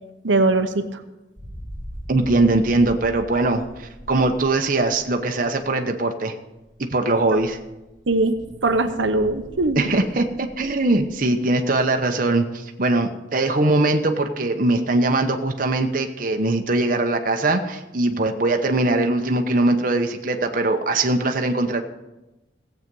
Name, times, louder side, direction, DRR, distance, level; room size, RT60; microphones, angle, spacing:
voice 1, 0.2-1.0 8.1-8.3 8.6-9.9, right 2 dB, 90° right, 7 dB, 0.9 m, -20 dB
sound 1, 1.4-5.7 6.6-6.7 7.3-11.6, equal, 5° left, 5.8 m, -41 dB
voice 2, 2.1-6.3 6.9-7.6 9.7-21.8, right 2 dB, 45° right, 4 dB, 0.9 m, -21 dB
16.5 x 8.1 x 5.4 m, 1.0 s
head